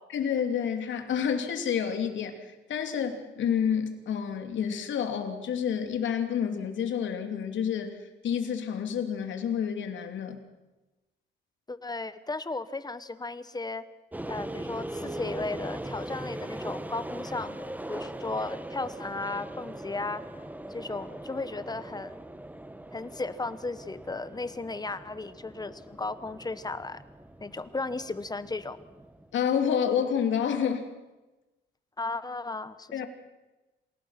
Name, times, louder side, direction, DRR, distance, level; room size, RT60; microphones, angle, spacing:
voice 1, 0.1-7.9 8.2-10.4 29.3-30.9 32.9-33.1, left 8 dB, 70° left, 6 dB, 3.1 m, -29 dB
voice 2, 11.7-13.8 14.3-20.2 20.7-22.2 22.9-27.0 27.4-28.8 32.0-33.0, left 3 dB, 20° left, 14 dB, 1.2 m, -35 dB
sound 1, 14.1-29.3, right 1 dB, 10° right, 1.5 m, -40 dB
27.5 x 17.5 x 6.0 m, 1.1 s
cardioid pair, 90°, 20 cm